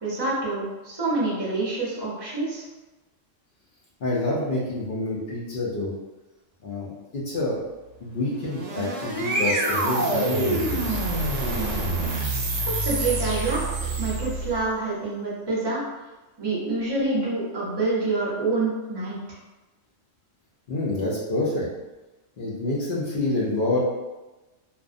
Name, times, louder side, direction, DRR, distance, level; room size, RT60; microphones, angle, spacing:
voice 1, 0.0-2.6 12.6-13.7 14.0-15.8 16.4-19.4, right 3 dB, 25° right, -7 dB, 0.6 m, -27 dB
voice 2, 4.0-5.9 6.6-7.6 8.0-11.0 20.7-21.7 22.4-23.8, left 2 dB, 55° left, -5 dB, 0.6 m, -27 dB
sound 1, 8.3-14.6, right 2 dB, 85° right, 0.9 m, -26 dB
2.4 x 2.1 x 2.5 m, 1.1 s
omnidirectional pair, 1.3 m